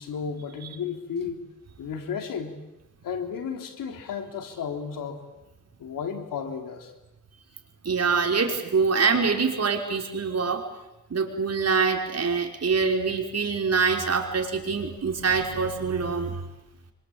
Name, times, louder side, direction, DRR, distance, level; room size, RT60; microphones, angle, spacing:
voice 1, 0.0-1.4 1.8-2.5 3.0-5.2 5.8-6.9, left 6 dB, 90° left, 6 dB, 3.5 m, -33 dB
voice 2, 7.8-10.6 11.1-16.4, right 5 dB, 50° right, 2 dB, 5.5 m, -25 dB
26.5 x 25.0 x 8.9 m, 0.92 s
cardioid pair, 75°, 32 cm